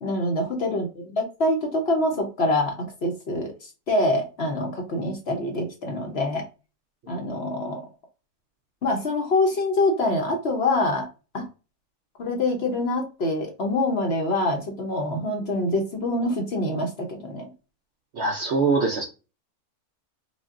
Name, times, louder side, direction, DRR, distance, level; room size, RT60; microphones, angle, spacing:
voice 1, 0.0-3.5 3.9-6.5 7.1-7.8 8.8-11.1 11.3-11.5 12.2-17.5, left 2 dB, 50° left, 2 dB, 1.0 m, -25 dB
voice 2, 18.1-19.1, right 4 dB, 60° right, 2 dB, 0.7 m, -23 dB
5.1 x 2.3 x 2.4 m, 0.31 s
omnidirectional pair, 1.6 m